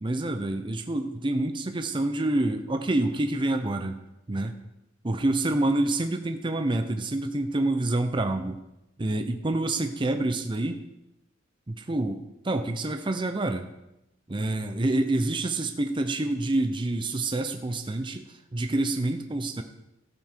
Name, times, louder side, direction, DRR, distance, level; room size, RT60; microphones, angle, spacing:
voice 1, 0.0-4.0 4.3-4.5 5.0-8.6 9.0-10.8 11.7-13.7 14.3-18.2 18.5-19.6, right 2 dB, 25° right, 6 dB, 0.6 m, -27 dB
14.0 x 7.1 x 4.5 m, 0.90 s
head